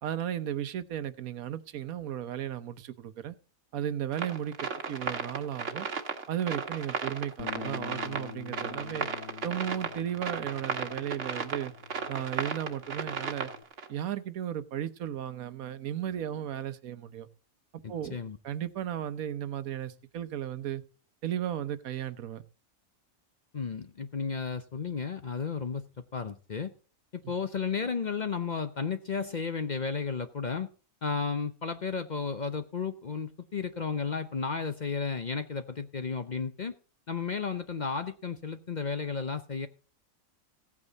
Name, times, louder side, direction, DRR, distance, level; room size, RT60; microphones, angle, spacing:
voice 1, 0.0-3.3 3.7-5.9 6.3-9.1 9.4-11.7 12.1-13.5 13.9-17.3 17.7-18.2 18.4-20.8 21.2-22.4, right 10 dB, 90° right, 1.3 m, -35 dB
sound 1, 4.1-13.9, right 5 dB, 60° right, 1.5 m, -35 dB
Bass guitar, 7.4-13.6, left 8 dB, 80° left, 1.2 m, -46 dB
voice 2, 17.8-18.4 23.5-26.7 27.1-30.7 31.0-36.7 37.1-39.7, left 5 dB, 40° left, 0.7 m, -33 dB
16.0 x 8.6 x 3.9 m
omnidirectional pair, 1.4 m